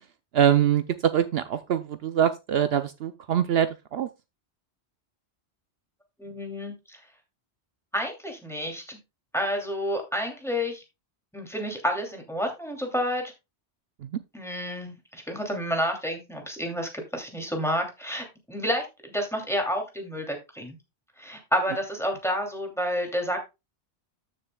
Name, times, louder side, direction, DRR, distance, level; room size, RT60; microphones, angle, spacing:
voice 1, 0.3-4.1 14.0-14.1, right 9 dB, 70° right, 0.8 m, -24 dB
voice 2, 6.2-7.0 7.9-9.0 9.3-10.8 11.3-13.2 14.3-20.8 21.2-23.4, equal, ahead, 2.7 m, -30 dB
14.0 x 6.6 x 2.3 m
omnidirectional pair, 1.1 m